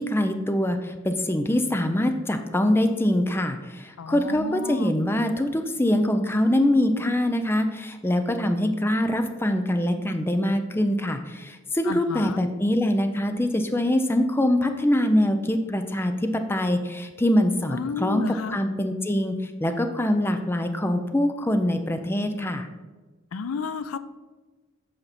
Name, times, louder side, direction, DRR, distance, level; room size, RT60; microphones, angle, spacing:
voice 1, 0.0-22.7, left 1 dB, 10° left, 7 dB, 0.5 m, -24 dB
voice 2, 4.0-4.9 11.8-12.4 17.7-18.6 23.3-24.0, left 5 dB, 85° left, 14 dB, 0.4 m, -32 dB
8.0 x 5.7 x 4.1 m, 1.3 s
head